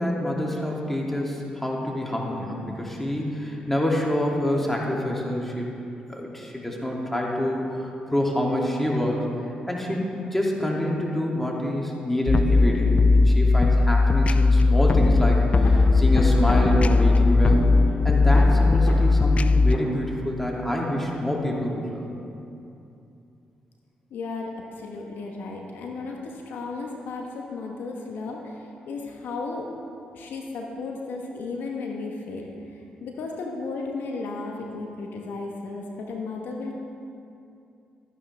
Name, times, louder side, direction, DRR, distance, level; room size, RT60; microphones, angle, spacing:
voice 1, 0.0-5.7 6.1-9.3 9.7-12.9 13.2-17.7 18.0-22.1, left 1 dB, 5° left, -2 dB, 2.4 m, -26 dB
sound 1, 12.3-19.8, left 3 dB, 40° left, 0.4 m, -18 dB
sound 2, 15.6-15.7 16.1-16.2 16.7-17.6 18.0-18.1 18.3-18.5 18.9-19.0 19.4-19.5 19.7-19.9, left 3 dB, 55° left, 2.1 m, -35 dB
voice 2, 24.1-29.7 30.1-36.7, left 3 dB, 70° left, 1 dB, 1.0 m, -34 dB
13.5 x 9.9 x 3.4 m, 2.7 s
hypercardioid pair, 45°, 3 cm